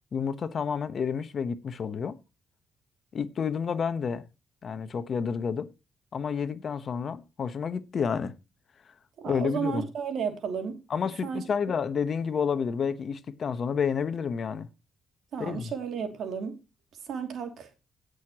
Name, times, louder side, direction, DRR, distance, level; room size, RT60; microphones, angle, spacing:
voice 1, 0.1-2.2 3.1-4.3 4.6-5.7 6.1-8.3 9.3-9.8 10.9-14.7 15.4-15.7, left 6 dB, 50° left, 1.1 m, -30 dB
voice 2, 9.2-10.8 11.2-11.5 15.3-16.6 17.1-17.8, right 6 dB, 65° right, 2.7 m, -33 dB
16.5 x 6.5 x 3.0 m
cardioid pair, 90°, 0 cm